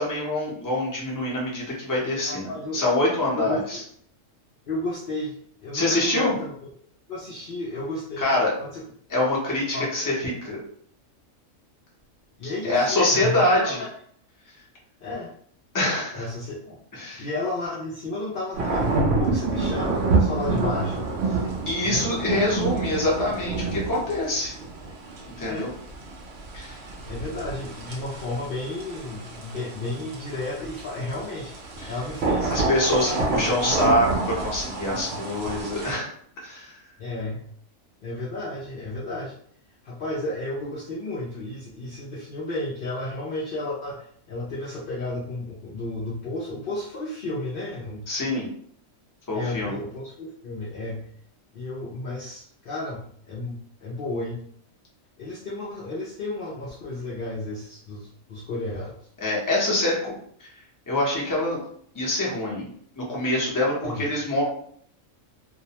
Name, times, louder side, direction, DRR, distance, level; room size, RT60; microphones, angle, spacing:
voice 1, 0.0-3.8 5.7-6.3 8.2-8.5 9.1-10.6 12.4-13.8 15.7-16.3 16.9-17.3 21.6-24.5 25.4-25.7 26.5-26.8 31.8-32.0 32.5-36.1 36.4-36.7 48.1-48.5 49.3-49.7 59.2-60.1 60.4-60.5 60.9-61.6 61.9-62.6 63.0-64.4, left 1 dB, 20° left, -4 dB, 0.5 m, -25 dB
voice 2, 2.3-2.8 3.3-3.6 4.7-5.3 5.6-6.5 7.1-8.3 8.6-8.8 9.7-9.9 12.4-13.9 15.0-15.3 16.1-16.7 17.2-21.1 21.8-22.1 25.4-25.7 27.1-32.7 33.0-33.8 37.0-37.5 38.0-39.3 39.8-48.1 49.3-51.1 51.5-54.4 55.2-59.0 63.8-64.1, left 2 dB, 75° left, -5 dB, 0.5 m, -33 dB
sound 1, 18.5-35.9, right 3 dB, 60° right, 0.7 m, -28 dB
2.5 x 2.0 x 2.8 m, 0.62 s
omnidirectional pair, 1.4 m